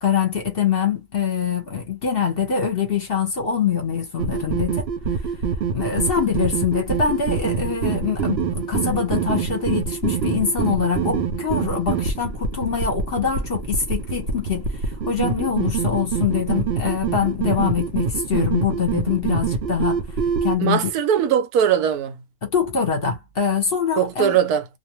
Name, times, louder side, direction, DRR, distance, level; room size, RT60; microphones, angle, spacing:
voice 1, 0.0-4.9 5.7-20.0 20.4-20.8 22.4-24.4, left 7 dB, 45° left, 0.9 m, -24 dB
sound 1, 4.2-20.6, right 5 dB, 60° right, 0.7 m, -25 dB
voice 2, 20.6-22.1 24.0-24.6, right 9 dB, 85° right, 1.1 m, -20 dB
2.5 x 2.1 x 2.9 m
omnidirectional pair, 1.6 m